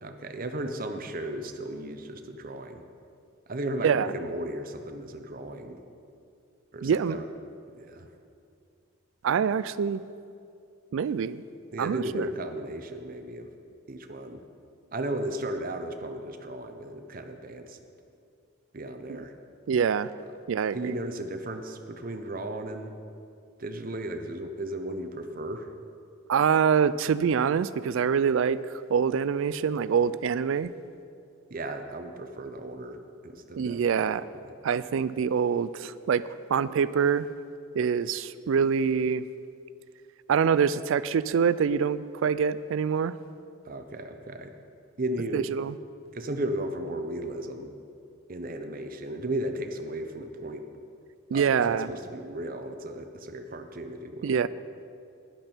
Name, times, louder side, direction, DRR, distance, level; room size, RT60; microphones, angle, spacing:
voice 1, 0.0-2.8 3.5-5.8 6.7-7.3 7.7-8.1 11.7-13.5 13.9-14.4 14.9-17.8 18.7-19.3 20.7-22.9 23.6-25.7 31.5-34.1 43.6-44.5 45.0-45.5 46.1-47.7 48.3-50.7 51.3-54.5, right 1 dB, 40° right, 6 dB, 0.7 m, -35 dB
voice 2, 6.8-7.2 9.2-10.0 10.9-11.4 11.8-12.3 19.1-19.2 19.7-20.1 20.5-20.9 26.3-30.7 33.6-34.2 34.6-37.3 37.8-39.2 40.3-43.1 45.3-45.8 51.3-51.9 54.2-54.5, right 7 dB, 65° right, 17 dB, 0.3 m, -25 dB
11.5 x 10.5 x 4.5 m, 2.5 s
head